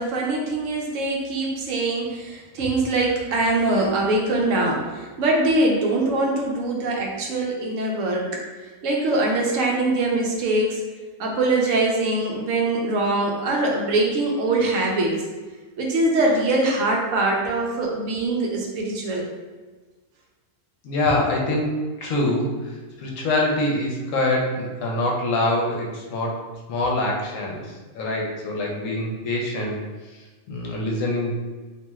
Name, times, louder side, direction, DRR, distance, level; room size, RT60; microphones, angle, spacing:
voice 1, 0.0-8.4 8.8-10.8 11.2-15.2 15.8-19.3 21.1-21.2, right 2 dB, 75° right, -1 dB, 0.9 m, -23 dB
voice 2, 20.8-22.5 23.0-26.4 26.7-27.6 27.9-29.8 30.5-31.3, left 1 dB, 70° left, -2 dB, 1.0 m, -24 dB
3.0 x 2.7 x 2.2 m, 1.3 s
omnidirectional pair, 1.4 m